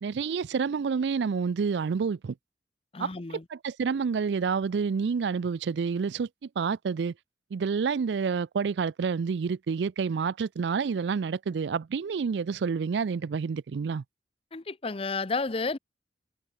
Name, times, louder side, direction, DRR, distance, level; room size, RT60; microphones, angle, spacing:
voice 1, 0.0-2.3 3.0-3.1 3.5-6.3 6.6-7.1 7.5-14.0, right 5 dB, 75° right, 0.4 m, -28 dB
voice 2, 2.9-3.4 14.5-15.8, left 3 dB, 35° left, 0.7 m, -31 dB
head